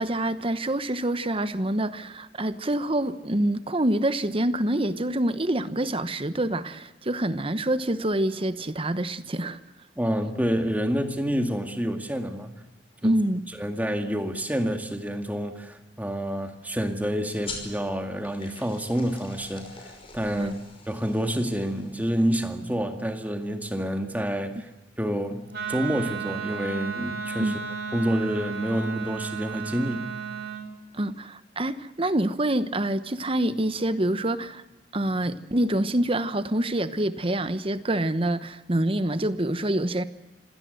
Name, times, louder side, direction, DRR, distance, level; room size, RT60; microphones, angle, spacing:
voice 1, 0.0-9.6 13.0-13.4 20.4-20.5 27.4-27.6 30.9-34.6 34.9-40.0, right 1 dB, 30° right, 1.1 m, -26 dB
voice 2, 10.0-12.5 13.0-13.1 13.6-20.6 20.9-24.7 25.0-27.5 27.9-30.1, equal, 10° right, 2.1 m, -28 dB
sound 1, 17.4-22.5, left 4 dB, 30° left, 5.4 m, -44 dB
Wind instrument woodwind instrument, 25.5-30.7, right 6 dB, 60° right, 4.3 m, -34 dB
26.0 x 17.0 x 7.9 m
head